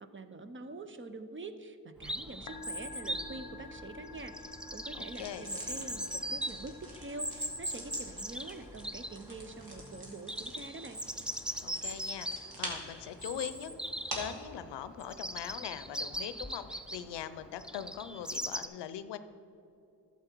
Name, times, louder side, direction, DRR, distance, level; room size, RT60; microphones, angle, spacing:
voice 1, 0.0-11.0, right 2 dB, 30° right, 10 dB, 0.7 m, -45 dB
Chirp tweet, 2.0-18.7, equal, ahead, 0.3 m, -40 dB
Musical instrument, 2.3-17.0, left 3 dB, 50° left, 0.7 m, -54 dB
voice 2, 4.9-5.5 11.6-13.7 14.1-19.2, left 10 dB, 85° left, 12 dB, 0.6 m, -41 dB
sound 1, 5.1-14.4, right 1 dB, 60° right, 2.3 m, -47 dB
11.5 x 7.2 x 4.5 m, 2.8 s
cardioid pair, 75°, 41 cm